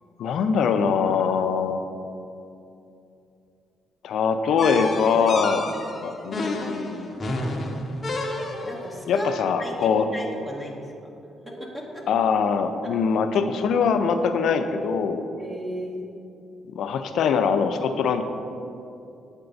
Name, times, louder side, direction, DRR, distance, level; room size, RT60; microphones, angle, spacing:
voice 1, 0.2-1.8 4.0-5.7 6.0-7.2 9.1-10.1 12.1-15.3 16.7-18.2, left 6 dB, 75° left, 8 dB, 0.4 m, -23 dB
sound 1, 4.6-8.9, left 2 dB, 35° left, 0.9 m, -30 dB
voice 2, 5.5-5.8 8.6-9.3 9.6-10.9 11.7-12.0 15.4-16.1, equal, 15° right, -2 dB, 1.1 m, -35 dB
8.7 x 4.5 x 3.9 m, 2.7 s
cardioid pair, 90°, 0 cm